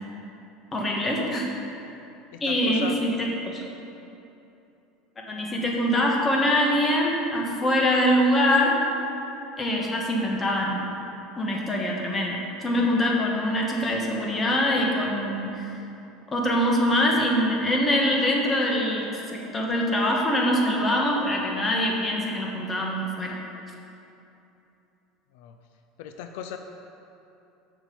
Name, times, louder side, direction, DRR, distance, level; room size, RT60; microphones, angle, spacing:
voice 1, 0.7-1.5 2.4-3.6 5.3-8.7 9.6-10.8 11.4-15.7 16.3-23.4, equal, 20° left, -1 dB, 1.5 m, -24 dB
voice 2, 2.3-3.0 25.3-25.6 26.0-26.6, left 9 dB, 75° left, 6 dB, 0.5 m, -37 dB
7.1 x 5.8 x 7.1 m, 2.8 s
supercardioid pair, 130°, 0 cm